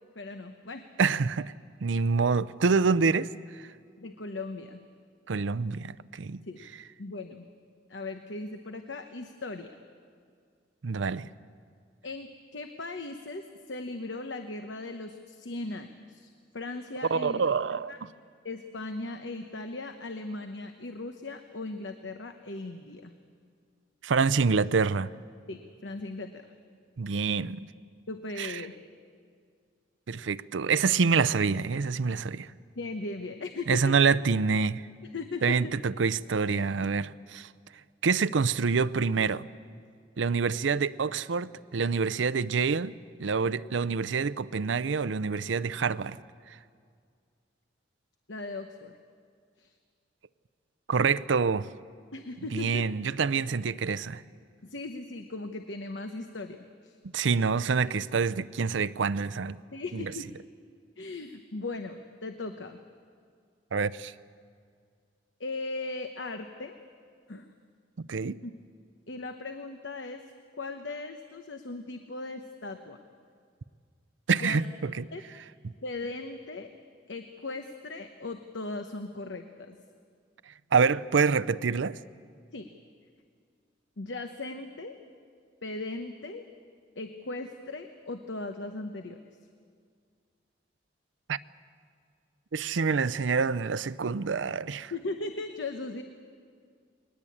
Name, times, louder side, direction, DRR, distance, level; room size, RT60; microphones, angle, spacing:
voice 1, 0.1-0.8 4.0-4.8 6.5-6.6 7.0-7.5 7.9-9.8 12.0-17.4 17.9-18.0 18.4-23.1 25.5-26.5 28.1-28.7 32.7-33.9 35.1-35.7 48.3-48.9 49.6-49.7 52.1-52.9 54.6-56.6 56.8-57.0 59.7-60.3 61.0-62.8 65.4-66.8 67.3-67.5 68.4-68.5 69.1-70.2 70.5-73.0 74.3-74.6 75.1-75.2 75.8-76.7 77.1-79.8 82.5-82.7 84.0-85.0 85.6-86.4 87.0-89.2 94.9-96.0, left 2 dB, 75° left, 1.0 m, -38 dB
voice 2, 1.0-1.5 1.8-3.3 5.3-6.4 10.8-11.3 17.1-18.1 24.0-25.1 27.0-27.7 28.4-28.6 30.1-32.5 33.7-34.8 35.4-37.5 38.0-39.4 40.2-42.9 43.2-46.2 50.9-51.7 52.5-54.2 57.1-59.6 59.9-60.1 63.7-64.1 68.0-68.4 74.3-75.0 80.7-82.0 91.3-91.4 92.5-94.9, right 5 dB, 80° right, 0.6 m, -26 dB
21.0 x 19.5 x 8.6 m
head